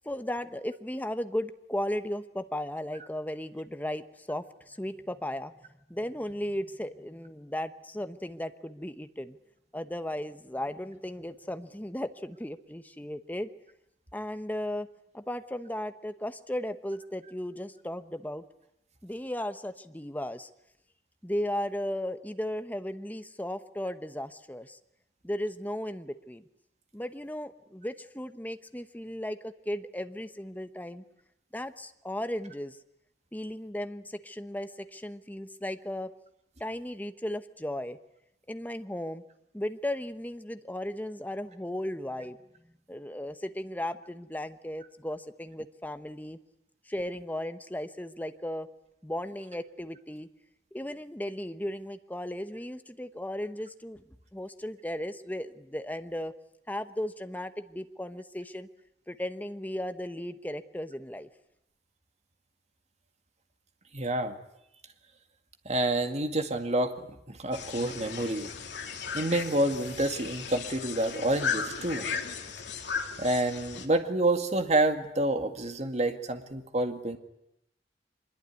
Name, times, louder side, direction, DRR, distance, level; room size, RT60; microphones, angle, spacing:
voice 1, 0.0-9.4 9.7-13.5 14.1-14.9 15.1-18.4 19.0-20.5 21.2-24.8 25.2-26.4 26.9-31.0 31.5-32.8 33.3-36.1 36.6-38.0 38.5-39.2 39.5-42.4 42.9-46.4 46.9-48.7 49.0-50.3 50.7-54.0 54.3-56.3 56.7-58.7 59.1-61.3, left 1 dB, 10° left, 10 dB, 1.1 m, -36 dB
voice 2, 63.9-64.4 65.7-68.5 69.1-72.1 73.2-77.2, right 1 dB, 40° right, 7 dB, 2.1 m, -28 dB
sound 1, 67.5-73.9, left 6 dB, 70° left, 2.9 m, -36 dB
24.0 x 21.5 x 9.7 m, 0.80 s
head